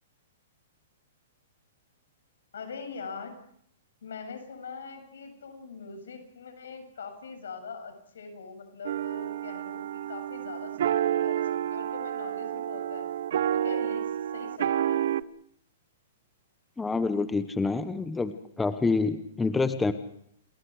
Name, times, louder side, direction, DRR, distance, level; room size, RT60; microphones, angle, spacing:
voice 1, 2.5-3.3 4.0-13.1 13.5-15.1, left 5 dB, 85° left, 7 dB, 7.3 m, -42 dB
sound 1, 8.8-15.2, right 11 dB, 65° right, 0.8 m, -29 dB
voice 2, 16.8-18.3 18.6-19.9, left 3 dB, 10° left, 11 dB, 1.0 m, -27 dB
29.0 x 21.5 x 4.9 m, 0.66 s
hypercardioid pair, 150°, 0 cm